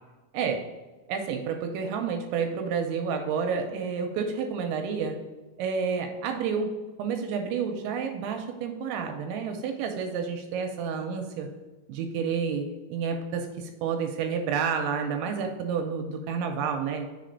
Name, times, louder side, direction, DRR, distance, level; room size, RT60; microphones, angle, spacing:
voice 1, 1.1-5.2 5.6-6.7 7.0-11.5 11.9-17.1, right 6 dB, 80° right, 4 dB, 2.8 m, -30 dB
6.3 x 4.2 x 5.2 m, 1.2 s
omnidirectional pair, 5.4 m